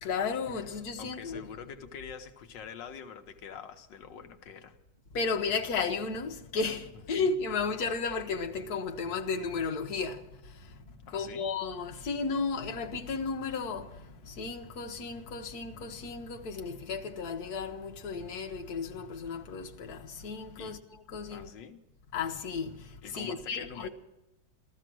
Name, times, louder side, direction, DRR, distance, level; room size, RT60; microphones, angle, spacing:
voice 1, 0.0-1.4 5.2-10.2 11.1-13.9 14.3-20.8 21.1-21.5 22.1-22.7 23.1-23.9, left 4 dB, 60° left, 1.6 m, -33 dB
voice 2, 1.0-4.8 7.1-7.3 11.1-11.5 20.6-20.8 21.3-21.8 23.0-23.9, left 7 dB, 90° left, 1.7 m, -45 dB
sound 1, 10.6-16.7, left 2 dB, 15° right, 2.6 m, -58 dB
15.0 x 14.0 x 6.1 m
omnidirectional pair, 1.9 m